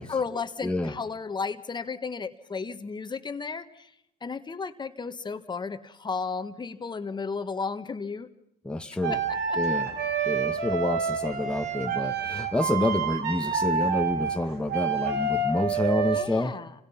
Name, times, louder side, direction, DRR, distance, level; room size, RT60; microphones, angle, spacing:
voice 1, 0.1-3.9 4.2-8.3 9.1-9.6 16.1-16.7, left 5 dB, 25° left, 10 dB, 1.4 m, -34 dB
voice 2, 0.6-0.9 8.6-9.2 9.6-9.9 10.2-16.6, left 2 dB, 5° left, 4 dB, 1.3 m, -28 dB
sound 1, 9.0-16.2, right 5 dB, 80° right, 3.1 m, -28 dB
30.0 x 26.5 x 5.7 m, 0.78 s
cardioid pair, 110°, 17 cm